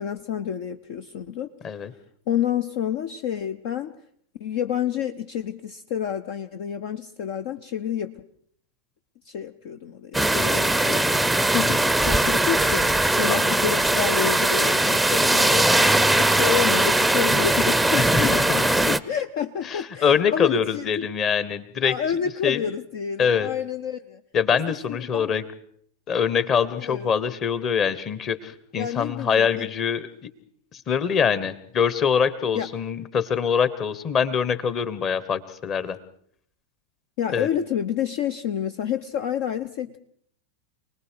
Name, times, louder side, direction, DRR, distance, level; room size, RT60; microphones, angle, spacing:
voice 1, 0.0-1.8 2.3-3.9 4.4-8.2 9.2-21.1 21.8-24.2 24.5-25.3 26.8-27.1 28.8-29.7 32.5-32.7 37.2-40.0, left 9 dB, 50° left, 9 dB, 0.8 m, -29 dB
sound 1, 10.1-19.0, right 1 dB, ahead, 0.8 m, -20 dB
voice 2, 13.3-13.7 15.7-15.9 18.0-18.8 19.6-22.0 22.4-22.6 23.2-23.5 24.3-25.4 26.1-30.3 30.7-36.0 37.3-37.5, left 7 dB, 30° left, 15 dB, 1.4 m, -24 dB
28.5 x 19.5 x 4.8 m, 0.65 s
figure-of-eight pair, 90°, 0 cm